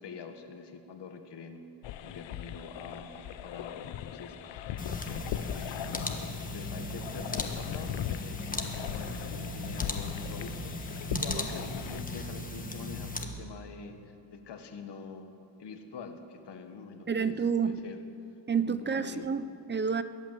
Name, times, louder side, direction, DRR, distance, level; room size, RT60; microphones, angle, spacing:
voice 1, 0.0-1.7 2.0-15.3 15.6-17.4 17.6-18.0 18.6-19.3, left 5 dB, 70° left, 6 dB, 1.6 m, -45 dB
sound 1, 1.8-12.0, left 11 dB, 85° left, 0.7 m, -39 dB
sound 2, 4.8-13.2, left 2 dB, 20° left, 1.3 m, -37 dB
voice 2, 11.1-11.5 17.1-17.8 18.5-20.0, right 6 dB, 25° right, 13 dB, 0.5 m, -30 dB
22.5 x 8.5 x 7.6 m, 2.7 s
cardioid pair, 115°, 44 cm